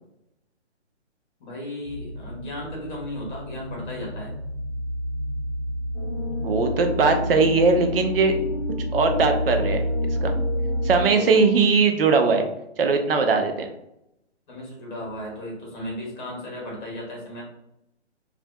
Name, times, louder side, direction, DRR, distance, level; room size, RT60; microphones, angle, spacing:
voice 1, 1.4-4.3 11.1-11.6 14.5-17.4, left 1 dB, 40° left, -2 dB, 1.2 m, -35 dB
sound 1, 1.8-11.1, equal, 80° right, 1.1 m, -29 dB
sound 2, 5.9-11.3, left 5 dB, 70° left, 0.5 m, -34 dB
voice 2, 6.4-8.4 8.9-9.8 10.1-10.4 10.8-12.5 12.8-13.7, right 4 dB, 55° right, 5 dB, 0.5 m, -20 dB
2.6 x 2.4 x 2.2 m, 0.82 s
hypercardioid pair, 150°, 35 cm